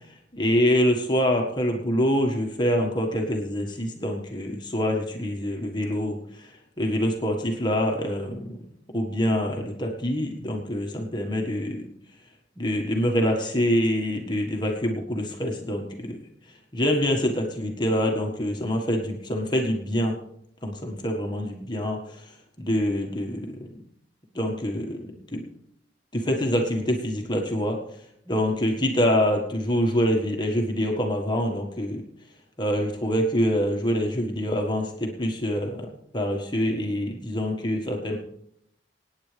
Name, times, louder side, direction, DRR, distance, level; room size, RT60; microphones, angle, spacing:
voice 1, 0.3-6.5 6.8-8.6 8.9-11.8 12.6-16.2 16.7-20.2 20.6-22.0 22.6-23.7 24.3-25.4 26.1-27.8 28.3-32.0 32.6-35.9 36.1-38.2, equal, 25° left, 1 dB, 1.6 m, -25 dB
25.5 x 9.4 x 3.4 m, 0.73 s
head